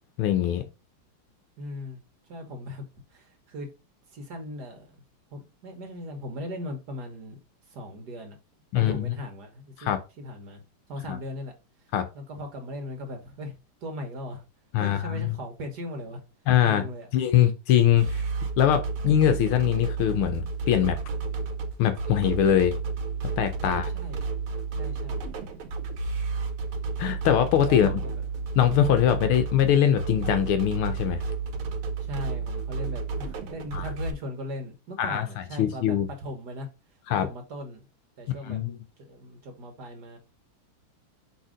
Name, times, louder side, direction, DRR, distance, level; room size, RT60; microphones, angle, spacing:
voice 1, 0.2-0.6 8.7-9.2 9.8-10.0 11.1-11.2 11.9-12.1 14.7-15.3 16.5-16.8 17.1-18.2 18.6-21.0 21.8-22.7 23.4-23.9 27.0-27.9 28.6-31.2 33.7-33.8 35.0-35.3 35.6-36.1 37.1-37.3 38.4-38.8, left 10 dB, 80° left, 1.6 m, -22 dB
voice 2, 1.6-2.0 2.3-2.9 3.1-3.7 4.1-5.0 5.3-7.4 7.7-8.4 8.7-10.6 10.9-11.5 12.1-13.6 13.8-14.4 14.8-16.2 16.6-17.1 23.6-24.2 24.8-25.2 27.7-28.1 29.1-29.3 32.0-36.7 37.1-37.8 38.2-38.6 39.0-40.2, left 1 dB, 55° right, 1.6 m, -38 dB
sound 1, 18.0-34.1, right 4 dB, 75° right, 1.8 m, -31 dB
5.4 x 3.5 x 4.9 m
omnidirectional pair, 2.4 m